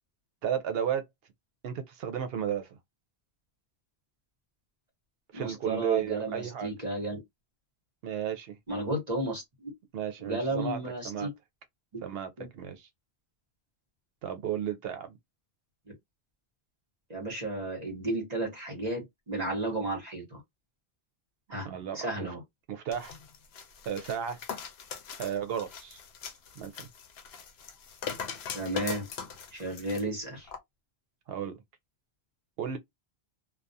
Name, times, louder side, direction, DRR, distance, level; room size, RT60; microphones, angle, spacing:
voice 1, 0.4-1.0 1.6-2.8 5.3-6.8 8.0-8.6 9.9-10.8 11.0-11.3 12.0-12.8 14.2-15.2 21.6-22.3 22.7-23.2 23.9-24.4 25.2-26.0 26.6-26.9 31.3-31.6 32.6-32.8, right 9 dB, 70° right, 0.8 m, -33 dB
voice 2, 5.3-7.2 8.7-9.7 10.2-11.3 12.4-12.5 17.1-20.4 21.5-21.7 21.9-22.4 28.5-29.1 29.5-30.5, right 2 dB, 40° right, 1.1 m, -33 dB
sound 1, 22.9-30.0 30.5-30.6, left 7 dB, 75° left, 0.8 m, -41 dB
2.3 x 2.2 x 2.6 m
omnidirectional pair, 1.1 m